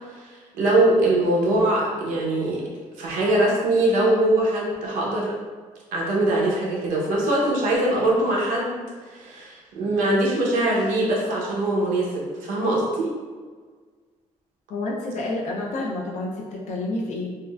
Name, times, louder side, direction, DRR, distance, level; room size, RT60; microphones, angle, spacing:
voice 1, 0.1-2.6 3.0-5.4 5.9-13.1, right 1 dB, 90° right, -4 dB, 0.8 m, -22 dB
voice 2, 14.7-17.3, left 2 dB, 65° left, -2 dB, 0.5 m, -29 dB
3.6 x 2.1 x 2.3 m, 1.5 s
cardioid pair, 120°, 13 cm